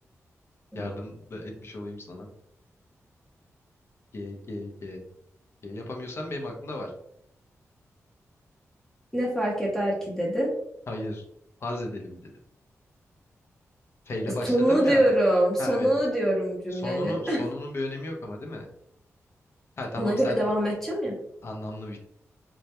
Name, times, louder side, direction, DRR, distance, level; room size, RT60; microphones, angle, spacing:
voice 1, 0.7-2.3 4.1-5.0 5.6-6.9 10.9-11.2 11.6-12.3 14.1-15.1 15.6-15.9 16.7-18.7 19.8-20.5 21.4-22.0, left 1 dB, 50° left, 2 dB, 0.6 m, -35 dB
voice 2, 9.1-10.5 14.4-17.4 20.0-21.1, right 1 dB, 5° left, -4 dB, 0.7 m, -24 dB
2.2 x 2.1 x 2.8 m, 0.72 s
wide cardioid pair, 100°, 5 cm